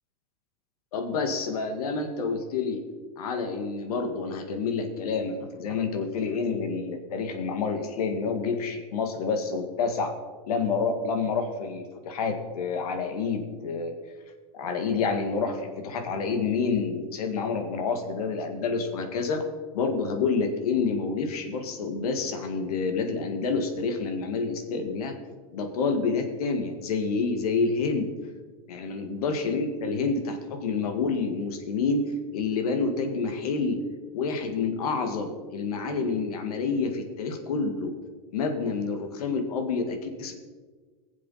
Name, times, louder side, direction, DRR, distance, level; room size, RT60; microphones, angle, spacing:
voice 1, 0.9-2.8 3.2-10.1 10.5-13.9 14.5-19.4 19.7-25.1 25.5-28.1 28.7-33.8 34.1-37.9 38.3-40.3, left 4 dB, 85° left, 5 dB, 2.0 m, -28 dB
20.5 x 7.4 x 4.3 m, 1.4 s
supercardioid pair, 140°, 19 cm